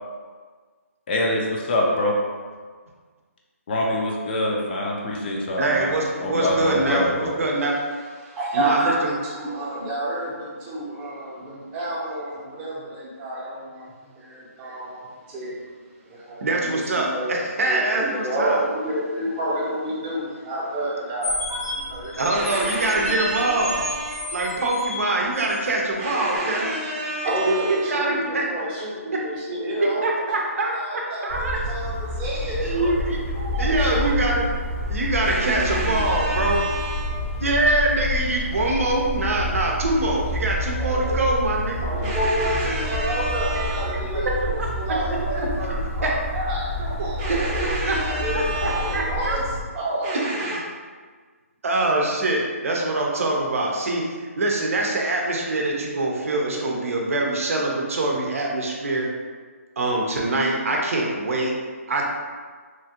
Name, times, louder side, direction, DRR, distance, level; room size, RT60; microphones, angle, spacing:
voice 1, 1.1-2.1 3.7-5.9 6.2-7.3, left 1 dB, 40° left, -2 dB, 0.5 m, -24 dB
voice 2, 5.6-7.7 8.5-9.1 16.4-18.6 22.2-23.8 24.3-26.8 27.5-28.4 30.0-31.6 32.6-33.2 33.6-34.4 34.9-36.6 37.4-41.9 43.9-44.7 45.4-45.5 46.0-46.1 47.3-47.4 47.9-48.0 48.3-49.4 51.6-59.1 59.8-61.5 61.9-62.0, right 2 dB, 65° right, -1 dB, 0.6 m, -24 dB
voice 3, 8.4-9.0 9.2-15.6 16.0-17.3 17.7-24.3 26.0-31.2 31.7-33.0 33.3-34.3 35.2-37.3 40.8-41.2 41.8-49.4 49.7-50.6, right 1 dB, 20° right, -7 dB, 0.7 m, -29 dB
sound 1, 21.2-25.8, left 2 dB, 85° left, 0.9 m, -32 dB
sound 2, 31.3-49.6, equal, 55° left, 0.9 m, -29 dB
3.0 x 2.4 x 2.8 m, 1.5 s
hypercardioid pair, 150°, 8 cm